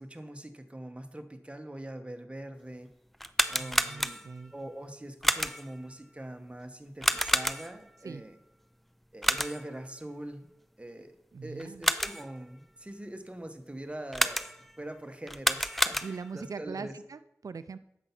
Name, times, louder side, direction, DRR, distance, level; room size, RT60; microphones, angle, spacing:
voice 1, 0.0-2.9 3.5-4.2 4.5-8.4 9.1-10.5 10.8-14.5 14.8-17.0, right 1 dB, 20° right, 6 dB, 1.2 m, -43 dB
sound 1, 3.1-4.5 5.2-5.8 7.0-7.9 9.2-9.8 11.6-12.4 14.1-14.8 15.3-16.4, equal, 5° left, 0.5 m, -29 dB
voice 2, 3.6-4.5 8.0-8.2 11.3-11.8 16.0-17.8, right 5 dB, 80° right, 12 dB, 0.4 m, -41 dB
10.0 x 7.0 x 5.8 m, 0.84 s
wide cardioid pair, 60°, 6 cm